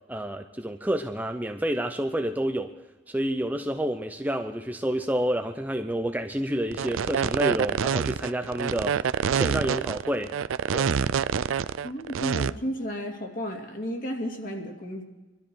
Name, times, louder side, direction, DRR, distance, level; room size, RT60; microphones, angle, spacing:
voice 1, 0.1-2.7 3.1-9.1 9.3-10.4 10.7-10.9, right 1 dB, 10° right, 5 dB, 0.6 m, -29 dB
sound 1, 6.7-12.5, right 7 dB, 80° right, 0.4 m, -26 dB
voice 2, 11.8-15.0, equal, 45° left, 1 dB, 2.5 m, -33 dB
23.5 x 13.0 x 4.6 m, 1.2 s
head